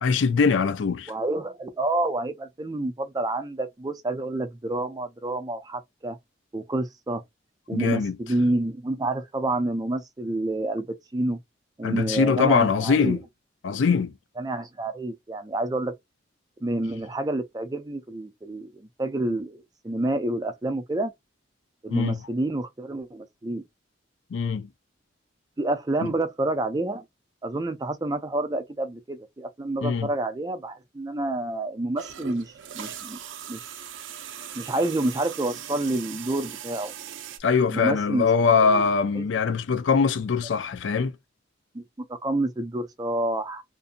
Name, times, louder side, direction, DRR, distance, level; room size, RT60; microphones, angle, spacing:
voice 1, 0.0-1.1 7.7-8.2 11.8-13.2 13.6-14.1 21.9-22.2 24.3-24.7 26.0-26.1 29.8-30.1 37.4-41.2, left 5 dB, 75° left, 0.4 m, -22 dB
voice 2, 1.1-6.2 6.5-7.2 7.7-10.9 11.1-11.4 11.8-13.2 14.4-15.9 16.6-21.1 21.8-23.6 25.6-27.0 27.4-33.2 33.5-33.7 34.6-36.9 37.7-38.8 39.2-39.3 41.7-43.6, right 2 dB, 20° right, 0.4 m, -28 dB
sound 1, 32.0-37.4, right 9 dB, 80° right, 0.4 m, -39 dB
2.6 x 2.6 x 2.5 m
head